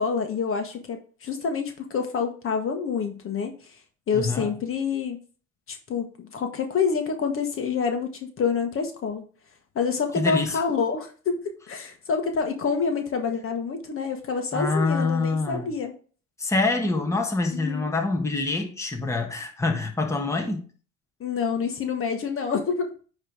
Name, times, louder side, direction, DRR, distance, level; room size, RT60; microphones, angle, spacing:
voice 1, 0.0-3.5 4.1-5.2 5.7-9.2 9.7-15.9 17.5-17.9 21.2-22.9, left 5 dB, 35° left, 5 dB, 1.3 m, -27 dB
voice 2, 4.1-4.5 10.1-10.6 14.5-15.7 16.4-20.7, left 3 dB, 10° left, 2 dB, 1.4 m, -25 dB
9.6 x 3.2 x 4.9 m, 0.40 s
supercardioid pair, 90°, 36 cm